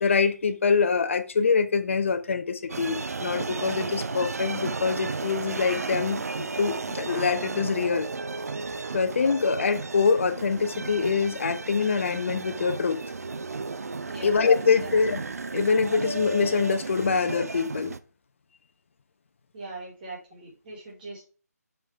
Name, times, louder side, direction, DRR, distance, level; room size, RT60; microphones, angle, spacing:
voice 1, 0.0-8.1 8.9-13.0 14.2-15.2 15.5-17.9, left 5 dB, 45° left, 1.0 m, -24 dB
sound 1, 2.7-18.0, right 3 dB, 60° right, 0.7 m, -34 dB
voice 2, 19.5-21.2, right 2 dB, 30° right, 4.3 m, -40 dB
7.4 x 7.0 x 3.4 m
figure-of-eight pair, 155°, 9 cm